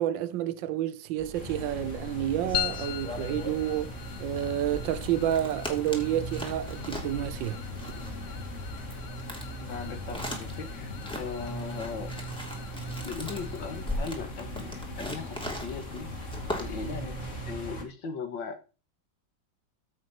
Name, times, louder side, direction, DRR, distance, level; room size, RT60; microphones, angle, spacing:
voice 1, 0.0-3.9 4.2-7.6, right 12 dB, 85° right, 1.4 m, -29 dB
sound 1, 1.2-17.4, left 1 dB, 5° left, 2.5 m, -40 dB
sound 2, 1.3-17.8, equal, 40° left, 2.5 m, -39 dB
sound 3, 2.5-17.2, left 13 dB, 65° left, 1.1 m, -42 dB
voice 2, 9.6-12.1 13.0-16.2 16.6-17.2 17.5-18.6, left 5 dB, 80° left, 2.3 m, -38 dB
14.0 x 6.1 x 4.3 m
omnidirectional pair, 2.0 m